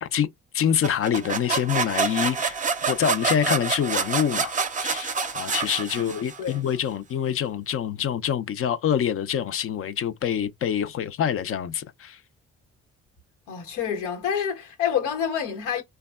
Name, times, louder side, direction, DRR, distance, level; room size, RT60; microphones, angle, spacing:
voice 1, 0.5-2.6 2.9-4.5 4.8-12.2, left 9 dB, 50° left, 0.5 m, -26 dB
sound 1, 0.8-6.5, right 5 dB, 25° right, 0.5 m, -27 dB
voice 2, 13.5-15.8, left 8 dB, 90° left, 1.1 m, -28 dB
3.3 x 2.2 x 2.3 m
cardioid pair, 90°, 30 cm